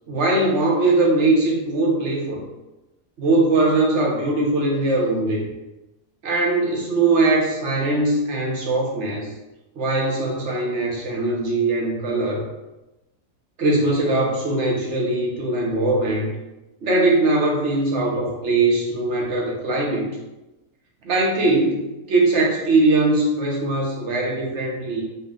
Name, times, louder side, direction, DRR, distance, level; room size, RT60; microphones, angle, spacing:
voice 1, 0.1-2.4 3.2-5.4 6.2-9.3 9.8-12.4 13.6-16.3 16.8-20.2 21.0-25.0, right 2 dB, 55° right, -2 dB, 1.0 m, -21 dB
4.0 x 2.3 x 3.7 m, 1.0 s
omnidirectional pair, 1.7 m